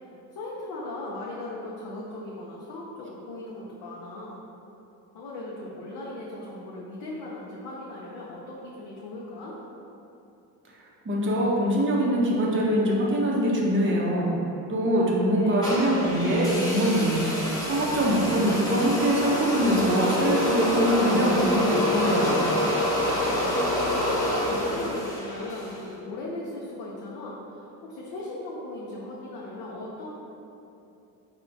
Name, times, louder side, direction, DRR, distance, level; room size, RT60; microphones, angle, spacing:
voice 1, 0.3-4.4 5.1-9.6 15.4-15.7 23.3-23.9 24.5-30.1, left 2 dB, 65° left, -5 dB, 0.6 m, -38 dB
voice 2, 11.0-14.3 14.7-22.4, right 1 dB, 30° right, -4 dB, 0.6 m, -23 dB
sound 1, 15.6-25.8, left 1 dB, 10° left, 0.7 m, -27 dB
4.3 x 2.1 x 2.6 m, 2.8 s
cardioid pair, 95°, 40 cm